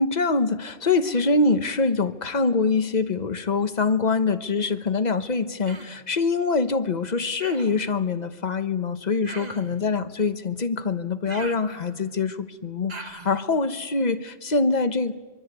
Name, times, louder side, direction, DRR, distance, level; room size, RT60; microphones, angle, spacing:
voice 1, 0.0-15.1, left 4 dB, 45° left, 10 dB, 1.2 m, -24 dB
Human voice, 5.7-6.0 7.4-7.9 9.2-9.8 11.3-12.2 12.9-13.4, right 3 dB, 45° right, 1.5 m, -40 dB
24.0 x 23.5 x 8.2 m, 1.3 s
omnidirectional pair, 1.0 m